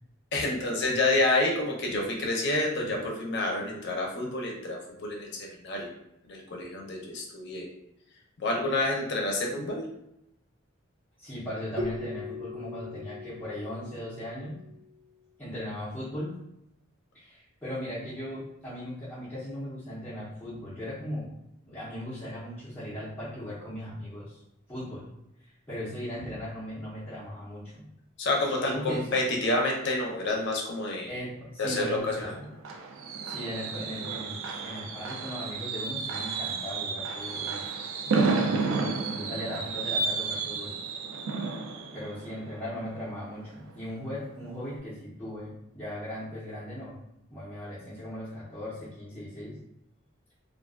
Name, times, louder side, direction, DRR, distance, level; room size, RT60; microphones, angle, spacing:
voice 1, 0.3-5.9 6.3-7.7 8.4-9.8 28.2-31.1 31.6-32.3, left 2 dB, 60° left, 0 dB, 0.5 m, -28 dB
voice 2, 11.2-14.6 15.4-16.4 17.1-21.4 21.6-24.4 24.7-25.1 25.4-27.9 28.6-29.1 31.1-32.5 33.2-37.7 38.0-40.8 41.9-47.0 47.3-49.6, left 1 dB, 10° left, -11 dB, 0.6 m, -38 dB
Keyboard (musical), 11.8-14.6, left 2 dB, 55° right, 0.8 m, -38 dB
Fireworks, 32.0-43.7 44.1-44.3 44.6-44.7, right 4 dB, 75° right, 0.3 m, -32 dB
2.4 x 2.2 x 2.3 m, 0.81 s
head